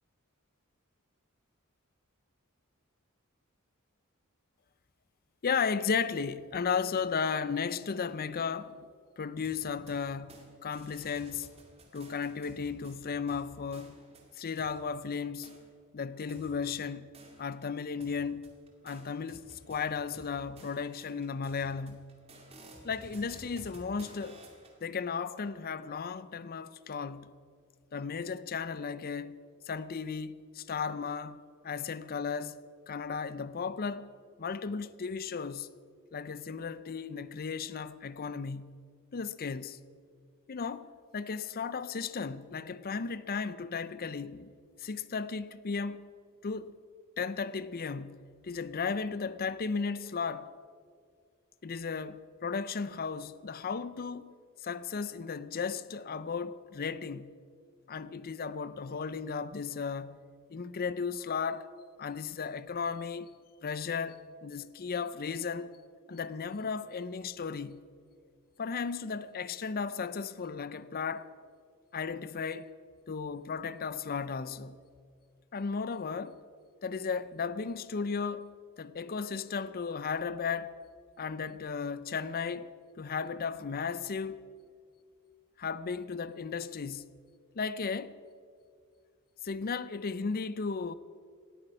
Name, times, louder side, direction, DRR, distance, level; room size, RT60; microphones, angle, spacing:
voice 1, 5.4-8.8 9.2-11.5 11.9-14.0 14.4-15.5 15.9-17.1 17.4-18.5 18.8-22.1 22.8-24.4 24.8-27.3 27.9-29.4 29.7-32.6 32.9-34.1 34.4-35.7 36.1-38.8 39.1-39.8 40.5-44.5 44.8-46.1 46.4-46.8 47.2-50.5 51.6-54.3 54.6-57.4 57.9-60.2 60.5-61.7 62.0-63.3 63.6-65.7 66.1-67.8 68.6-71.3 71.9-72.7 73.1-74.8 75.5-76.4 76.8-80.7 81.2-84.4 85.6-87.1 87.5-88.2 89.4-90.9, left 5 dB, 45° left, 0.5 m, -35 dB
sound 1, 9.4-10.5 10.7-14.8 15.4-15.6 16.3-17.7 18.0-24.8, right 1 dB, 30° right, 2.4 m, -54 dB
18.5 x 13.5 x 5.5 m
head